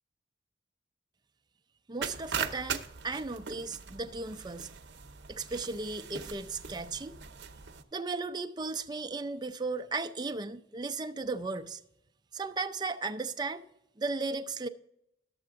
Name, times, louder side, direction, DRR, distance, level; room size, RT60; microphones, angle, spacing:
voice 1, 1.9-4.7 5.3-7.2 7.9-11.8 12.3-13.6 14.0-14.7, right 3 dB, 25° right, 0.5 m, -35 dB
sound 1, 2.0-7.8, right 6 dB, 70° right, 0.7 m, -40 dB
11.5 x 7.8 x 3.6 m
head